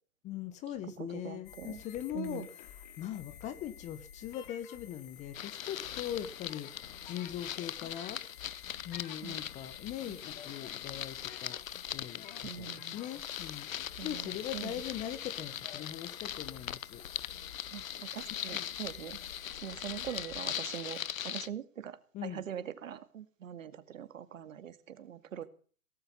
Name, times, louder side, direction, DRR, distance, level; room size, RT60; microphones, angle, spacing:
voice 1, 0.2-6.7 7.0-8.2 8.8-11.6 11.9-17.0 18.4-18.7 22.1-22.4, left 11 dB, 15° left, 1.1 m, -41 dB
voice 2, 1.1-1.8 2.1-2.5 9.2-9.4 10.1-10.2 12.4-13.0 14.0-14.7 17.7-19.2 19.6-21.0 21.2-25.4, right 9 dB, 60° right, 2.2 m, -43 dB
sound 1, 1.4-20.6, left 9 dB, 35° left, 2.2 m, -52 dB
sound 2, 5.3-21.5, left 10 dB, 65° left, 0.9 m, -41 dB
17.5 x 14.5 x 5.6 m
hypercardioid pair, 135°, 43 cm